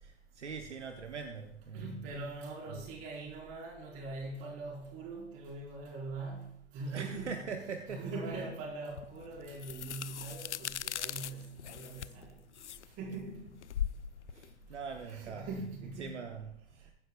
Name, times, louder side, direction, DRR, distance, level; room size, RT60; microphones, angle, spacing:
voice 1, 0.0-2.1 2.7-2.8 6.9-8.5 14.3-16.9, right 5 dB, 80° right, 6 dB, 1.0 m, -43 dB
voice 2, 1.7-6.5 6.7-7.4 7.9-12.7 13.0-13.5 15.0-16.2, right 3 dB, 40° right, -2 dB, 5.1 m, -42 dB
sound 1, 9.0-15.7, left 10 dB, 80° left, 0.5 m, -40 dB
22.0 x 9.8 x 2.4 m, 0.73 s
figure-of-eight pair, 95°, 35 cm